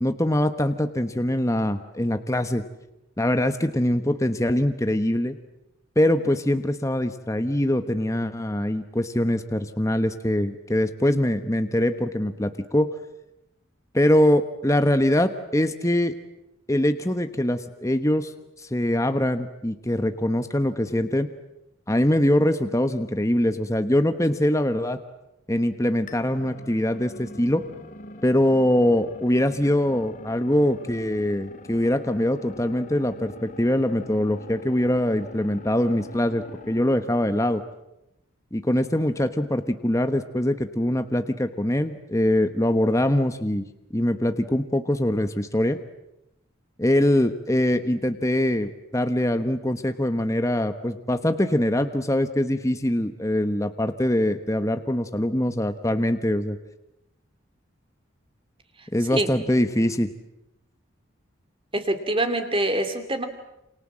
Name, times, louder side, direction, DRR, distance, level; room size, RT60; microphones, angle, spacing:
voice 1, 0.0-2.6 3.2-5.3 6.0-12.9 13.9-16.1 16.7-18.3 18.6-21.3 21.9-25.0 25.5-27.6 28.2-37.6 38.5-43.6 43.9-45.8 46.8-56.6 58.9-60.1, left 1 dB, 15° left, 8 dB, 1.2 m, -23 dB
sound 1, 26.1-37.0, left 2 dB, 40° left, 2.0 m, -44 dB
voice 2, 61.7-63.3, right 1 dB, 25° right, 8 dB, 2.9 m, -25 dB
28.5 x 27.5 x 7.6 m, 0.87 s
head